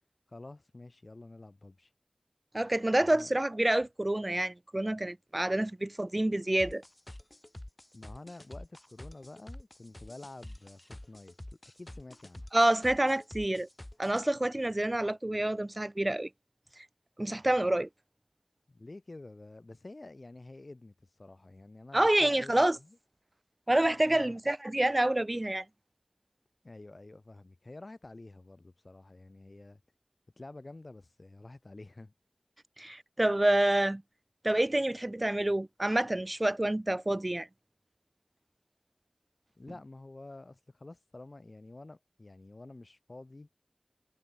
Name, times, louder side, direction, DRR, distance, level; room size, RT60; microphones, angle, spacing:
voice 1, 0.3-1.9 3.0-3.3 7.9-12.5 18.7-23.0 24.0-24.4 26.6-29.8 30.4-32.1 39.6-43.5, left 2 dB, 70° left, 7.1 m, -49 dB
voice 2, 2.5-6.8 12.5-13.7 14.0-16.3 17.2-17.9 21.9-22.8 23.7-25.6 32.8-34.0 34.4-37.5, right 1 dB, 40° right, 0.5 m, -28 dB
sound 1, 6.6-14.2, left 1 dB, 30° left, 3.2 m, -47 dB
wide cardioid pair, 45°, 0 cm